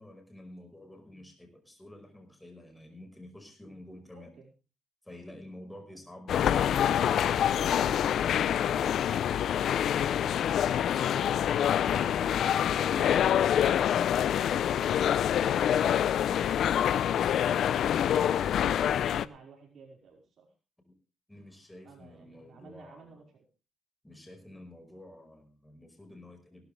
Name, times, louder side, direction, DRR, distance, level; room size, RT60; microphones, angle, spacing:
voice 1, 0.0-4.3 5.0-8.1 21.3-23.3 24.0-26.7, left 1 dB, 10° left, 5 dB, 5.1 m, -49 dB
voice 2, 4.1-4.5 5.5-5.7 9.8-11.6 12.0-16.2 16.7-20.5 21.8-23.4, right 5 dB, 60° right, 0 dB, 5.1 m, -54 dB
sound 1, 6.3-19.3, left 10 dB, 70° left, 0.6 m, -26 dB
17.5 x 13.0 x 3.4 m, 0.34 s
cardioid pair, 90°, 0 cm